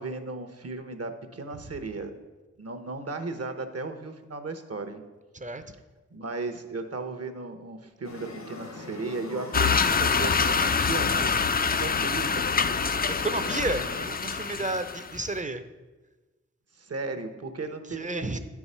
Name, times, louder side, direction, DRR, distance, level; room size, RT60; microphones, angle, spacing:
voice 1, 0.0-2.1 2.6-5.0 6.1-11.3 11.8-12.4 16.7-18.4, right 3 dB, 55° right, 8 dB, 0.9 m, -35 dB
sound 1, 8.0-14.1, left 2 dB, 75° left, 1.1 m, -41 dB
sound 2, 9.5-15.2, left 5 dB, 30° left, 0.4 m, -25 dB
voice 2, 13.1-15.6 17.9-18.4, right 2 dB, 25° right, 10 dB, 0.6 m, -31 dB
9.2 x 4.7 x 5.5 m, 1.2 s
wide cardioid pair, 55°, 29 cm